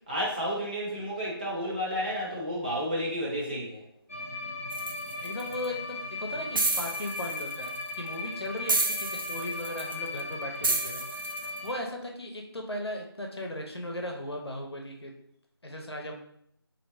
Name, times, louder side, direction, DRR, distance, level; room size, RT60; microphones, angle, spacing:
voice 1, 0.1-3.8, equal, 20° right, -5 dB, 0.7 m, -31 dB
sound 1, 4.1-11.8, left 2 dB, 30° left, 0.3 m, -37 dB
sound 2, 4.7-5.7 6.5-7.9 8.7-10.2 10.6-11.6, right 3 dB, 55° right, 0.4 m, -30 dB
voice 2, 5.2-15.1 15.6-16.1, left 1 dB, 75° left, 2 dB, 0.8 m, -37 dB
3.3 x 2.8 x 2.7 m, 0.72 s
figure-of-eight pair, 165°, 13 cm